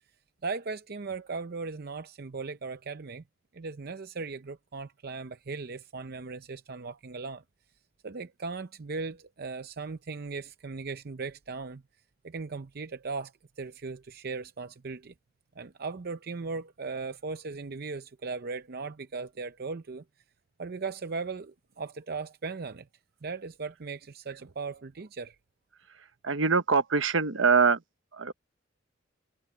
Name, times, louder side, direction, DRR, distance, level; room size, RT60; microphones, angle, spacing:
voice 1, 0.4-3.2 3.5-7.4 8.0-11.8 12.2-15.1 15.6-20.0 20.6-22.9 23.2-25.4, right 4 dB, 50° right, 0.6 m, -38 dB
voice 2, 26.2-27.8 28.1-28.3, right 5 dB, 75° right, 1.1 m, -23 dB
head